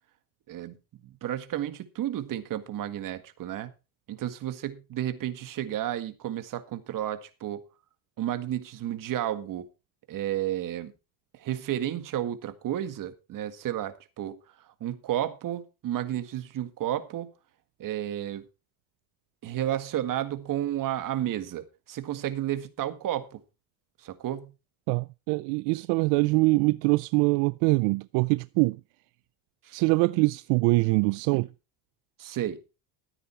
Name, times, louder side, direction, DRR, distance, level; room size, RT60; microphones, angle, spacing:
voice 1, 1.0-3.7 4.1-7.6 8.2-9.7 10.1-10.9 11.3-17.3 17.8-18.5 19.4-23.4 24.0-24.5 29.6-29.8 31.3-31.4 32.2-32.6, right 12 dB, 50° right, 1.8 m, -32 dB
voice 2, 24.9-28.8 29.7-31.5, right 25 dB, 80° right, 0.5 m, -23 dB
13.5 x 9.2 x 4.4 m
cardioid pair, 110°, 41 cm